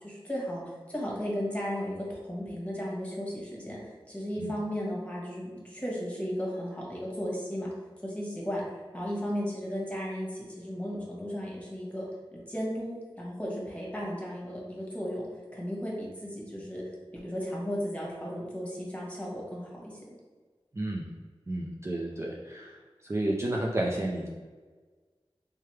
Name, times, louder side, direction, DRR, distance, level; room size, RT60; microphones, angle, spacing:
voice 1, 0.0-7.7 8.0-8.6 8.9-12.0 12.3-15.3 15.5-16.8 17.1-20.2, equal, 15° left, -4 dB, 1.3 m, -35 dB
voice 2, 20.7-21.1 21.5-24.3, right 1 dB, 30° right, -2 dB, 0.4 m, -31 dB
3.4 x 3.1 x 3.2 m, 1.4 s
wide cardioid pair, 45°, 10 cm